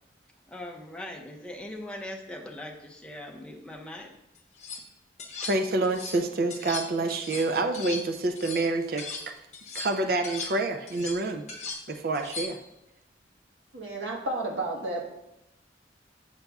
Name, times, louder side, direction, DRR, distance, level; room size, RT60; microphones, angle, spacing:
voice 1, 0.5-4.1, left 1 dB, 5° left, -1 dB, 0.6 m, -40 dB
sound 1, 4.4-4.8 5.2-6.2 6.5-9.3 9.5-12.7, left 4 dB, 40° left, 0.8 m, -39 dB
voice 2, 5.4-9.4 9.7-11.4 11.9-12.6, right 2 dB, 50° right, 5 dB, 0.4 m, -28 dB
voice 3, 13.7-15.0, right 2 dB, 85° right, -1 dB, 1.3 m, -31 dB
8.1 x 5.3 x 2.3 m, 0.87 s
head